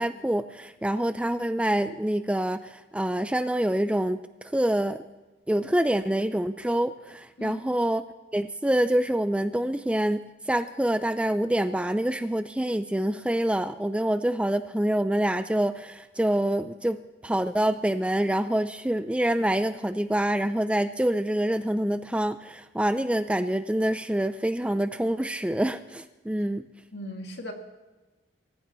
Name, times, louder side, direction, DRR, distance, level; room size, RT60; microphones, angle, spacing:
voice 1, 0.0-4.2 4.5-5.0 5.5-8.0 8.3-26.7, right 1 dB, 5° right, 11 dB, 0.4 m, -26 dB
voice 2, 26.9-27.5, equal, 65° left, 2 dB, 2.3 m, -37 dB
24.5 x 15.0 x 3.1 m, 1.2 s
head